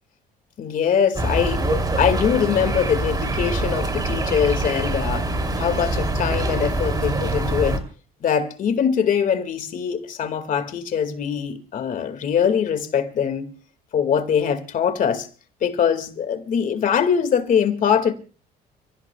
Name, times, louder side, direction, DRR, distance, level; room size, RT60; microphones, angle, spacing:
voice 1, 0.6-1.6 2.0-5.3 5.6-7.8 8.2-13.5 13.9-15.3 15.6-18.1, left 7 dB, 50° left, 2.2 m, -22 dB
sound 1, 1.2-7.8, right 1 dB, 25° right, 3.3 m, -24 dB
30.0 x 16.5 x 2.4 m
cardioid pair, 110°, 17 cm